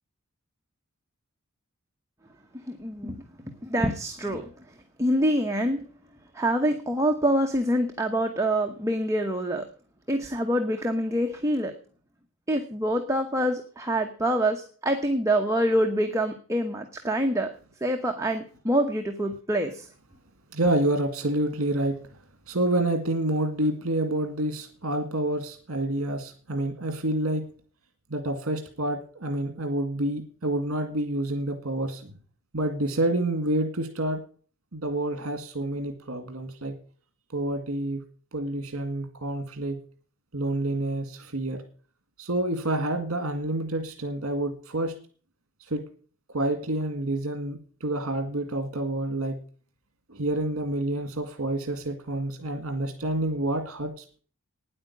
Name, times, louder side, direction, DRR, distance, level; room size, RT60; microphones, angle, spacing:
voice 1, 2.7-3.2 3.6-5.8 6.3-9.7 10.1-11.7 12.5-17.5 17.8-19.9, right 1 dB, 15° right, 3 dB, 1.0 m, -26 dB
voice 2, 20.5-22.0 22.5-27.4 28.1-32.1 32.5-34.2 34.7-36.8 37.3-38.0 38.3-39.8 40.3-41.6 42.2-44.9 45.7-45.8 46.3-49.4 50.1-54.2, right 1 dB, 65° right, 6 dB, 1.8 m, -28 dB
9.6 x 8.7 x 8.4 m, 0.43 s
head